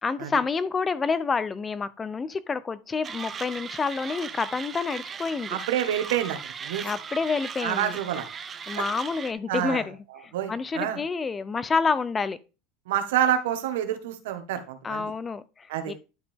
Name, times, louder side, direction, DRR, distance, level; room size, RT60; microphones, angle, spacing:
voice 1, 0.0-5.6 6.8-8.0 8.7-12.4 14.8-15.9, left 4 dB, 20° left, 0.6 m, -28 dB
Mechanisms, 3.0-9.3, right 7 dB, 25° right, 0.6 m, -38 dB
voice 2, 5.5-6.4 6.6-6.8 7.6-8.3 8.8-8.9 9.5-9.8 10.3-11.0 12.9-15.0 15.7-15.9, right 10 dB, 85° right, 1.5 m, -27 dB
11.0 x 5.0 x 3.6 m
supercardioid pair, 130°, 0 cm